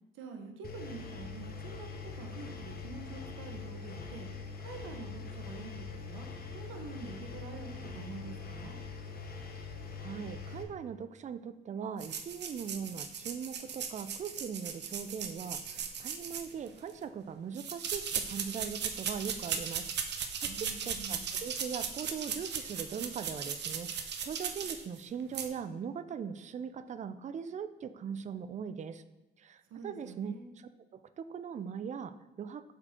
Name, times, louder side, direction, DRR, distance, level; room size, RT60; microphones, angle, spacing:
voice 1, 0.1-1.9 2.2-4.3 4.6-8.8 20.4-21.3 29.7-30.5, right 4 dB, 85° right, 4 dB, 1.1 m, -46 dB
Engine, 0.6-10.6, left 4 dB, 50° left, 1.0 m, -43 dB
voice 2, 10.0-29.0 29.4-32.6, right 7 dB, 35° right, 12 dB, 0.4 m, -40 dB
sound 1, 12.0-16.9 17.5-25.0 25.3-25.5, right 7 dB, 60° right, 0.8 m, -37 dB
6.5 x 4.5 x 4.3 m, 1.1 s
cardioid pair, 90°, 20 cm